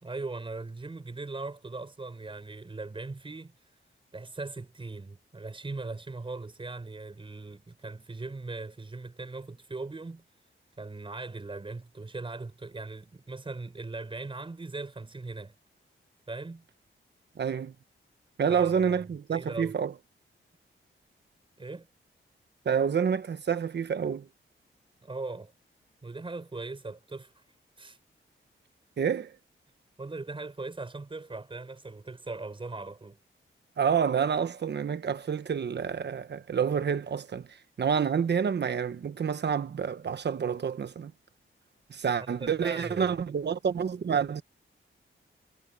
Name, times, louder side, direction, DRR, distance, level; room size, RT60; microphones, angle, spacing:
voice 1, 0.0-3.5 4.1-10.2 10.8-15.5 16.3-16.7 18.5-19.0 19.3-19.8 21.6-21.9 25.0-25.5 26.0-27.4 27.8-28.0 30.0-33.2 42.2-43.1, right 3 dB, 25° right, 5.2 m, -39 dB
voice 2, 17.4-17.7 18.4-19.9 22.6-24.3 29.0-29.3 33.8-41.1 41.9-44.4, right 7 dB, 55° right, 1.1 m, -28 dB
wide cardioid pair, 170°, 21 cm